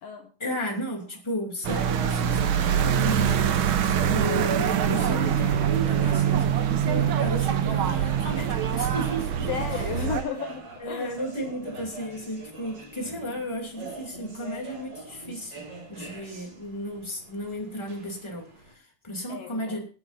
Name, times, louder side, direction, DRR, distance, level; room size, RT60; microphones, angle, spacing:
voice 1, 0.4-9.8 10.8-19.8, equal, 10° left, 1 dB, 2.4 m, -34 dB
sound 1, 1.6-10.2, right 9 dB, 70° right, 1.2 m, -24 dB
sound 2, 3.0-18.7, right 2 dB, 50° right, 3.9 m, -44 dB
voice 2, 9.5-11.2 19.3-19.8, left 7 dB, 70° left, 5 dB, 1.8 m, -34 dB
25.0 x 8.6 x 2.7 m, 0.37 s
omnidirectional pair, 3.4 m